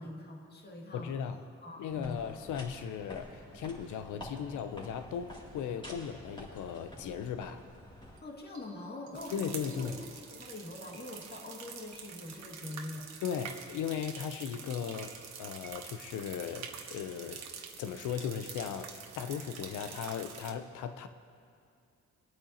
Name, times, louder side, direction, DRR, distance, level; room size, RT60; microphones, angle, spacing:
voice 1, 0.0-1.1 1.6-2.2 8.2-9.9 10.3-13.1, left 2 dB, 35° left, -1 dB, 2.1 m, -43 dB
voice 2, 0.9-1.4 1.8-7.6 9.3-10.0 13.2-17.5 17.8-21.1, left 8 dB, 80° left, 9 dB, 0.8 m, -37 dB
sound 1, 1.9-8.2, equal, 15° left, 2.7 m, -49 dB
sound 2, 4.6-4.9 5.4-6.3 6.6-6.8 7.3-7.5 8.2-10.4 10.9-11.5 11.9-12.5 13.9-14.5 15.0-16.0, right 4 dB, 75° right, 1.5 m, -61 dB
sound 3, 9.1-20.5, right 6 dB, 60° right, 1.2 m, -46 dB
26.0 x 8.7 x 2.9 m, 2.4 s
cardioid pair, 90°, 30 cm